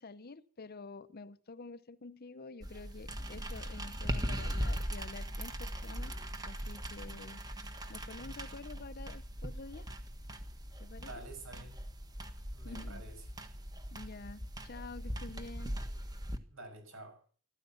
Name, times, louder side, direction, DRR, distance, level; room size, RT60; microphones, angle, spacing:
voice 1, 0.0-6.1 6.4-7.4 7.9-9.9 10.8-11.2 12.6-13.0 13.9-15.7, left 3 dB, 45° left, 0.8 m, -48 dB
sound 1, 2.6-16.4, equal, 20° right, 1.5 m, -40 dB
voice 2, 11.0-11.8 12.5-13.2 16.5-17.2, right 2 dB, 65° right, 6.6 m, -49 dB
14.5 x 13.5 x 7.2 m
head